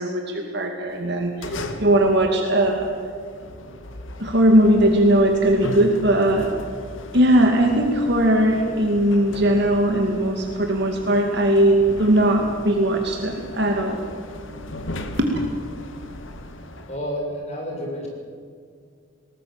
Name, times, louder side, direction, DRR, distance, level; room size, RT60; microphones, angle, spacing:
voice 1, 0.0-2.9 4.2-6.5 7.1-14.0 15.2-15.3, right 1 dB, 55° right, 2 dB, 2.3 m, -19 dB
sound 1, 0.9-17.0, left 1 dB, 75° left, 2.0 m, -37 dB
voice 2, 16.9-18.1, equal, 35° left, -1 dB, 7.2 m, -30 dB
20.0 x 19.0 x 8.9 m, 2.2 s
head